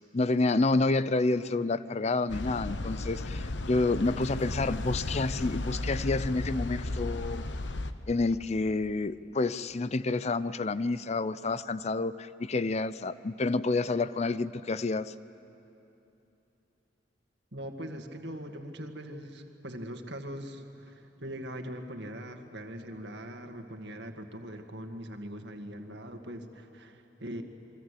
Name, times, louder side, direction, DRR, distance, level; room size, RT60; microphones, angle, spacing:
voice 1, 0.1-7.5 8.1-15.1, left 3 dB, 40° left, 15 dB, 0.5 m, -29 dB
sound 1, 2.3-7.9, left 2 dB, 90° left, 1.1 m, -35 dB
voice 2, 17.5-27.4, equal, 70° right, 5 dB, 2.1 m, -41 dB
28.5 x 23.5 x 8.5 m, 2.9 s
head